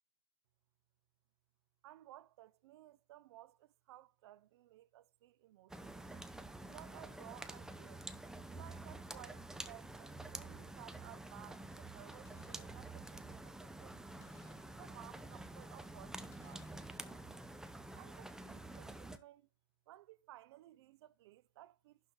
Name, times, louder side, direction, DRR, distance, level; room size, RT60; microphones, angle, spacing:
voice 1, 1.8-6.0 6.6-8.1 8.5-14.1 14.7-17.4 18.0-19.5 19.9-22.0, right 15 dB, 60° right, 0.5 m, -58 dB
sound 1, 5.7-19.2, right 2 dB, 5° right, 0.6 m, -49 dB
Boom, 12.2-13.8 14.2-15.8 16.3-18.5 18.9-19.0, left 6 dB, 55° left, 3.4 m, -68 dB
11.0 x 4.0 x 3.8 m
hypercardioid pair, 115°, 16 cm